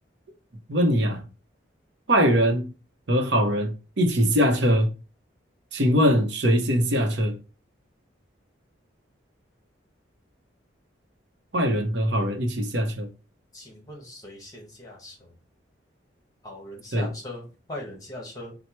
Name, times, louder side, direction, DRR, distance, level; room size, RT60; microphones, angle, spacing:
voice 1, 0.7-1.2 2.1-2.7 3.1-4.9 5.7-7.4 11.5-13.1 16.9-17.1, equal, 65° right, 0.7 m, -22 dB
voice 2, 13.5-15.1 16.4-18.5, left 1 dB, 20° left, 1.2 m, -40 dB
4.4 x 2.0 x 4.3 m
head